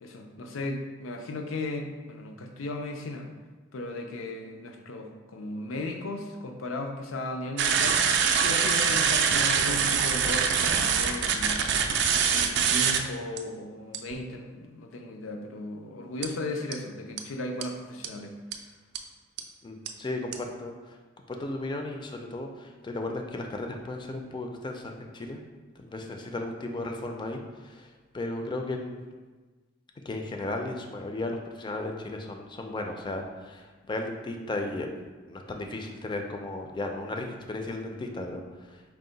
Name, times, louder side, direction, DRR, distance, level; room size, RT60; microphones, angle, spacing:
voice 1, 0.0-3.3 3.7-11.7 12.3-18.4, left 2 dB, 90° left, 4 dB, 0.5 m, -36 dB
sound 1, 7.6-13.0 13.4-13.5 13.9-14.2 16.2-16.3 16.7-16.8 17.2-17.3 17.6-17.7 18.0-18.1 18.5-18.6 19.0-19.1 19.4-19.5 19.9-20.0 20.3-20.4, right 6 dB, 60° right, 0.3 m, -24 dB
voice 2, 19.6-21.0 21.3-25.4 25.8-29.0 30.0-34.9 35.3-38.8, left 2 dB, 25° left, 3 dB, 0.3 m, -35 dB
4.6 x 2.1 x 3.9 m, 1.3 s
head